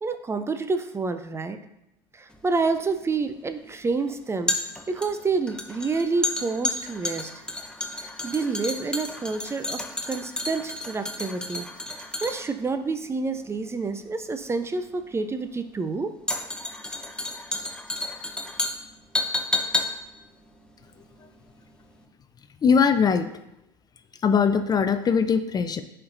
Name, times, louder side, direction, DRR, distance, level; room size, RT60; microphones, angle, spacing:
voice 1, 0.0-1.6 2.1-4.6 4.9-7.3 8.2-11.7 12.2-16.1, right 4 dB, 20° right, 9 dB, 0.5 m, -28 dB
sound 1, 2.3-21.6 21.9-22.0, left 2 dB, 5° left, 0.8 m, -32 dB
voice 2, 22.6-23.3 24.2-25.8, left 6 dB, 30° left, 10 dB, 0.5 m, -21 dB
10.5 x 4.4 x 2.6 m, 0.84 s
hypercardioid pair, 85°, 13 cm